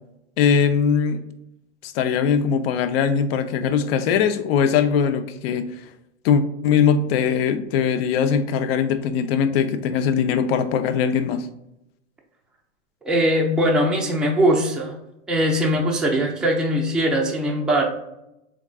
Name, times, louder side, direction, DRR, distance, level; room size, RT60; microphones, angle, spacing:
voice 1, 0.4-1.2 1.8-5.8 6.2-11.5, left 7 dB, 60° left, 10 dB, 0.5 m, -21 dB
voice 2, 13.0-14.9 15.3-17.8, equal, ahead, -1 dB, 0.4 m, -21 dB
3.7 x 3.6 x 2.3 m, 0.86 s
hypercardioid pair, 120°, 35 cm